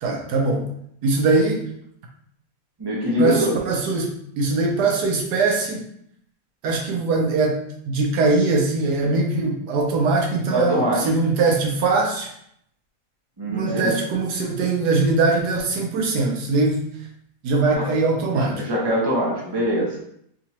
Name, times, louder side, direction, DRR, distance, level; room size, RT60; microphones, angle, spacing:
voice 1, 0.0-0.7 1.0-1.7 3.2-5.8 6.6-7.6 7.9-12.3 13.5-16.8 17.4-18.6, right 3 dB, 80° right, 0 dB, 1.3 m, -21 dB
voice 2, 2.8-3.6 10.5-11.0 13.4-13.9 17.7-18.0 18.3-20.0, equal, 20° right, -5 dB, 0.8 m, -23 dB
3.5 x 2.8 x 2.8 m, 0.70 s
omnidirectional pair, 1.7 m